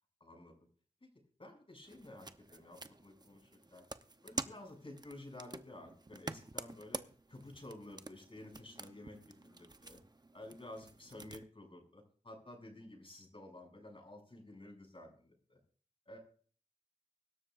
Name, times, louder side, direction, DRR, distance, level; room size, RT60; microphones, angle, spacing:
voice 1, 0.2-0.5 1.4-3.8 4.2-9.2 9.4-10.0 10.3-15.6 16.0-16.2, left 1 dB, 45° left, 2 dB, 6.7 m, -52 dB
sound 1, 1.8-11.4, right 2 dB, 35° right, 0.8 m, -48 dB
24.0 x 13.0 x 2.6 m, 0.43 s
wide cardioid pair, 60°, 13 cm